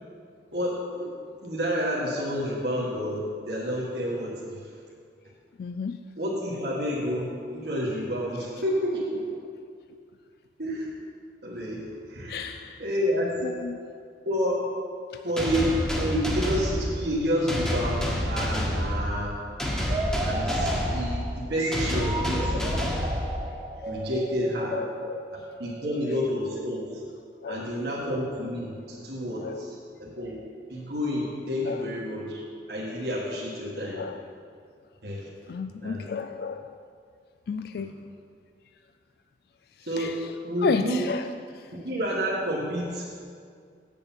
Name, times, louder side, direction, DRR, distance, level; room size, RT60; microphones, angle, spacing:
voice 1, 0.5-4.6 6.2-9.4 10.6-10.9 11.4-12.5 12.8-13.4 14.2-14.7 15.2-19.4 20.2-22.7 23.9-24.7 25.6-27.0 27.5-30.4 30.7-32.4 32.7-34.0 35.0-35.2 35.8-36.0 37.7-37.9 39.9-41.0 41.7-43.1, equal, 65° right, -5 dB, 1.6 m, -29 dB
voice 2, 5.6-6.0 12.3-12.8 13.4-13.8 21.9-22.9 24.7-25.3 27.4-27.7 29.4-29.6 31.7-31.9 33.9-34.2 35.5-36.7 37.5-37.9 39.9-40.3 40.6-41.7, left 5 dB, 60° left, 8 dB, 0.3 m, -33 dB
sound 1, 15.4-23.8, equal, 5° left, 1.2 m, -29 dB
sound 2, 19.8-26.5, right 1 dB, 25° right, 1.0 m, -34 dB
8.6 x 6.8 x 7.3 m, 2.2 s
head